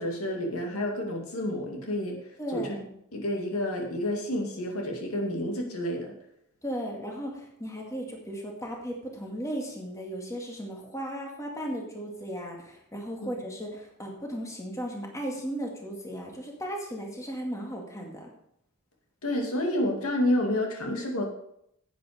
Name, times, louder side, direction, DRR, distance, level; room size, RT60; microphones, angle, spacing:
voice 1, 0.0-2.2 2.5-2.8 3.1-6.1 19.2-21.3, left 1 dB, 80° left, 1 dB, 2.2 m, -29 dB
voice 2, 2.4-2.9 6.6-18.3, equal, 15° left, 0 dB, 2.2 m, -36 dB
10.0 x 9.0 x 5.1 m, 0.75 s
head